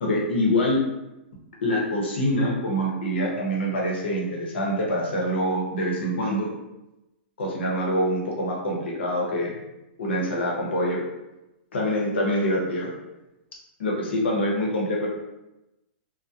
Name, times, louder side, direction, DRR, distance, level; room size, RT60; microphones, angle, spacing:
voice 1, 0.0-0.8 1.6-6.5 7.4-9.6 10.0-11.0 11.7-12.9 13.8-15.1, equal, 80° left, -2 dB, 0.8 m, -25 dB
2.2 x 2.1 x 2.7 m, 0.95 s
hypercardioid pair, 130°, 6 cm